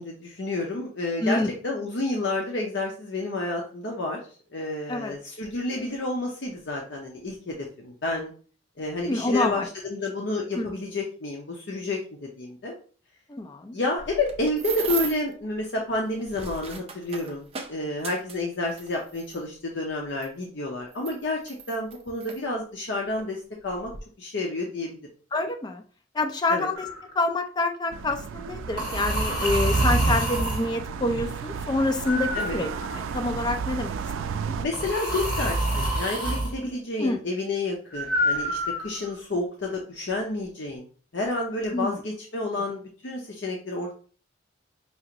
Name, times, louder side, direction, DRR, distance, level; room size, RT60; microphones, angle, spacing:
voice 1, 0.0-4.2 4.5-8.3 8.8-12.8 13.7-23.9 24.2-25.1 26.5-26.7 32.3-32.6 34.6-40.9 41.1-43.9, left 2 dB, 60° left, 0 dB, 0.7 m, -30 dB
voice 2, 1.2-1.5 4.9-5.1 9.0-9.7 10.6-10.7 13.3-13.8 25.3-25.8 26.1-26.9 27.2-34.0 34.2-34.6 37.0-37.2 41.7-42.0, left 2 dB, 20° left, 5 dB, 0.4 m, -27 dB
sound 1, 14.0-15.3 16.1-19.4 20.2-20.3 20.9-22.4 23.2-23.3 23.7-24.0, right 5 dB, 30° right, 0.5 m, -36 dB
sound 2, 26.7-27.0 28.8-30.7 32.1-33.2 34.7-36.5 37.9-39.1, right 1 dB, 45° left, 1.6 m, -26 dB
sound 3, 27.9-34.7, right 5 dB, 85° right, 0.3 m, -34 dB
5.6 x 2.5 x 2.9 m, 0.41 s
head